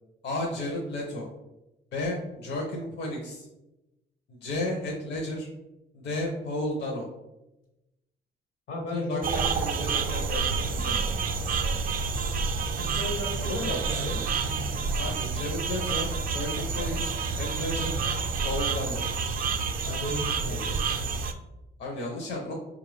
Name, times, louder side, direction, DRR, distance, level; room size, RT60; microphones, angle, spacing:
voice 1, 0.2-1.3 1.9-3.5 4.3-5.5 5.9-7.1 8.9-11.1 13.4-14.2 14.9-18.0 18.4-19.0 20.5-21.0 21.8-22.5, left 1 dB, 60° left, -1 dB, 0.7 m, -33 dB
voice 2, 8.7-9.2 12.6-14.2 19.8-20.6, left 1 dB, 80° left, 1 dB, 1.3 m, -35 dB
sound 1, 9.2-21.3, right 4 dB, 45° right, 0.4 m, -29 dB
4.3 x 2.4 x 3.4 m, 0.96 s
cardioid pair, 90°, 20 cm